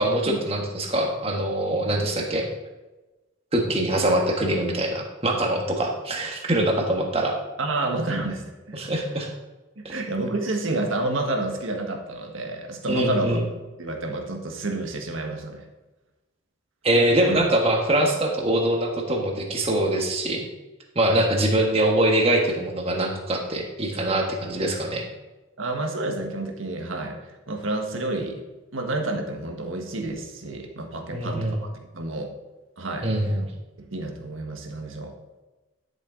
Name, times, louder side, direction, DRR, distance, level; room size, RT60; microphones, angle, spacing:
voice 1, 0.0-2.5 3.5-7.3 8.7-9.3 12.9-13.4 16.8-20.5 20.9-25.1 31.1-31.6 33.0-33.5, right 1 dB, 30° right, 1 dB, 1.4 m, -23 dB
voice 2, 7.6-8.8 9.7-13.4 13.8-15.6 17.3-17.4 25.6-28.4 28.7-31.7 31.9-32.3 32.8-33.4 33.8-35.2, right 2 dB, 85° right, 3 dB, 1.6 m, -29 dB
11.5 x 7.0 x 3.9 m, 1.1 s
head